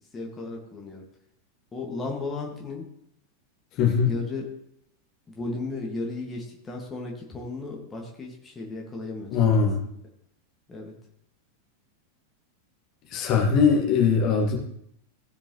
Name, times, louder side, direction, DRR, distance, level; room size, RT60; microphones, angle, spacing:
voice 1, 0.1-1.0 1.7-2.9 4.0-4.4 5.3-9.7 10.7-10.9, left 2 dB, 15° left, -1 dB, 2.1 m, -35 dB
voice 2, 3.8-4.1 9.3-9.8 13.1-14.6, left 6 dB, 40° left, 0 dB, 2.1 m, -21 dB
16.5 x 6.8 x 3.2 m, 0.73 s
figure-of-eight pair, 90°, 0 cm